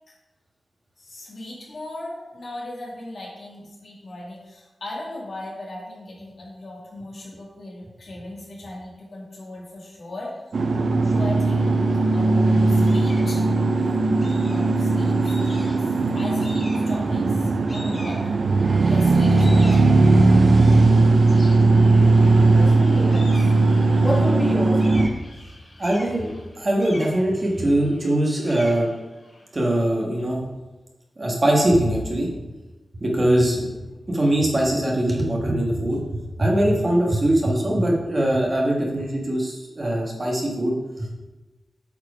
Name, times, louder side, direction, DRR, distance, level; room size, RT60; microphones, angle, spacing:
voice 1, 1.0-10.3 11.0-11.8 12.1-15.9 16.1-17.3 17.6-18.3 18.7-20.1, left 1 dB, 55° left, -4 dB, 2.3 m, -37 dB
sound 1, 10.5-25.1, right 3 dB, 55° right, 0.6 m, -18 dB
sound 2, 12.9-13.4 14.2-14.8 15.2-15.9 16.4-17.1 17.7-18.6 19.1-29.8, left 1 dB, 35° left, 2.2 m, -44 dB
voice 2, 22.1-25.2, equal, 10° left, -3 dB, 1.8 m, -30 dB
voice 3, 25.8-26.3 26.6-28.9 29.5-30.4 31.2-32.3 33.0-33.7 34.1-36.0 36.4-41.2, right 1 dB, 30° right, -2 dB, 1.4 m, -22 dB
8.4 x 4.7 x 5.0 m, 1.1 s
wide cardioid pair, 155°, 0 cm